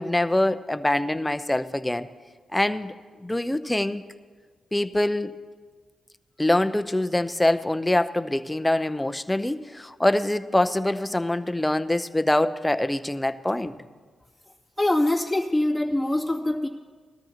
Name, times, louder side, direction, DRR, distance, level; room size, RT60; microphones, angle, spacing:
voice 1, 0.0-2.1 2.5-2.9 3.2-4.0 4.7-5.4 6.4-13.7, left 1 dB, 15° left, 11 dB, 0.7 m, -24 dB
voice 2, 14.8-16.7, left 1 dB, 5° right, -3 dB, 2.4 m, -23 dB
20.0 x 13.0 x 2.9 m, 1.5 s
supercardioid pair, 50°, 0 cm